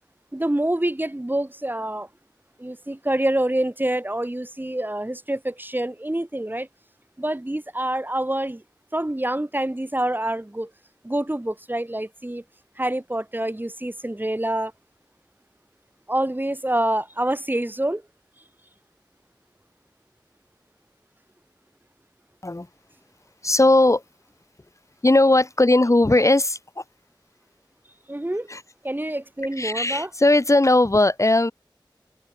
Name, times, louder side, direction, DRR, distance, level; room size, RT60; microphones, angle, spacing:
voice 1, 0.3-2.1 2.6-6.7 7.2-8.6 8.9-10.7 11.0-12.4 12.8-14.7 16.1-18.0 28.1-28.5 28.8-30.1, right 1 dB, 25° right, 1.4 m, -26 dB
voice 2, 23.4-24.0 25.0-26.8 28.5-28.6 29.6-31.5, left 2 dB, 35° left, 1.2 m, -18 dB
wide cardioid pair, 50°, 8 cm